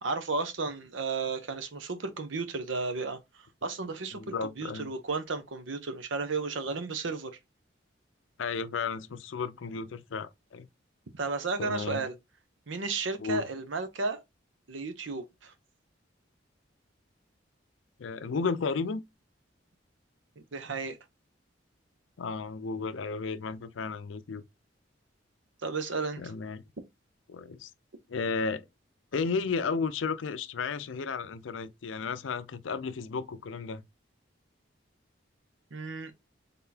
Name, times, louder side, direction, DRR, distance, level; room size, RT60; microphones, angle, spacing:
voice 1, 0.0-7.4 11.1-12.1 12.7-14.2 14.7-15.5 20.5-21.0 25.6-26.2 35.7-36.1, right 4 dB, 85° right, 0.8 m, -33 dB
voice 2, 4.1-4.9 8.4-10.7 11.6-12.1 13.2-13.4 18.0-19.0 22.2-24.4 26.2-26.6 27.3-27.7 28.1-28.7 29.1-33.8, left 5 dB, 80° left, 0.5 m, -33 dB
3.9 x 3.6 x 2.8 m
head